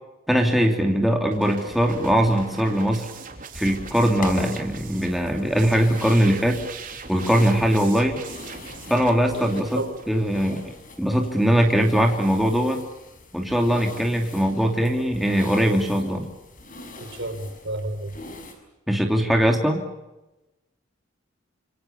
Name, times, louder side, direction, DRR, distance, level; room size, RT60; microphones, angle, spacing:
voice 1, 0.3-3.1 3.6-6.6 7.1-8.2 8.9-12.8 13.3-16.3 18.9-19.8, equal, ahead, 1 dB, 2.8 m, -21 dB
sound 1, 1.3-10.6, right 4 dB, 40° right, 3.8 m, -40 dB
sound 2, 3.5-18.5, left 1 dB, 40° left, 6.2 m, -42 dB
voice 2, 9.3-9.9 17.0-18.1, right 1 dB, 60° right, 6 dB, 5.8 m, -32 dB
27.0 x 26.0 x 7.0 m, 1.0 s
head